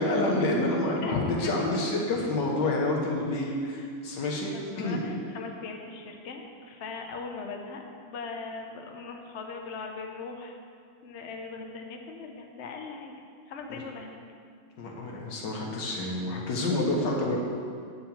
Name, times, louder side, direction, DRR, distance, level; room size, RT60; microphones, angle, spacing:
voice 1, 0.0-5.0 13.7-13.8 14.8-17.4, left 2 dB, 60° left, -1 dB, 1.8 m, -28 dB
voice 2, 1.0-1.5 3.4-3.6 4.5-10.6 11.0-13.2 13.5-14.2, left 4 dB, 80° left, 2 dB, 0.6 m, -38 dB
9.2 x 4.5 x 7.1 m, 2.2 s
omnidirectional pair, 2.3 m